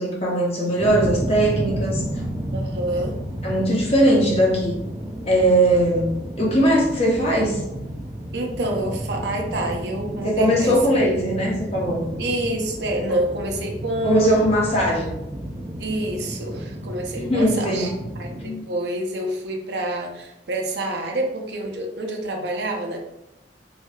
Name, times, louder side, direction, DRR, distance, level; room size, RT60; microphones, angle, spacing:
voice 1, 0.0-2.0 3.4-4.8 5.2-7.7 10.2-12.1 14.0-15.1 17.2-18.0 18.4-18.7, right 1 dB, 35° left, -3 dB, 0.9 m, -20 dB
sound 1, 0.8-18.5, right 1 dB, 20° right, 0.4 m, -32 dB
voice 2, 2.5-3.2 8.3-11.0 12.2-14.5 15.8-23.0, right 1 dB, 65° right, 2 dB, 0.6 m, -27 dB
4.4 x 2.7 x 2.3 m, 0.88 s
head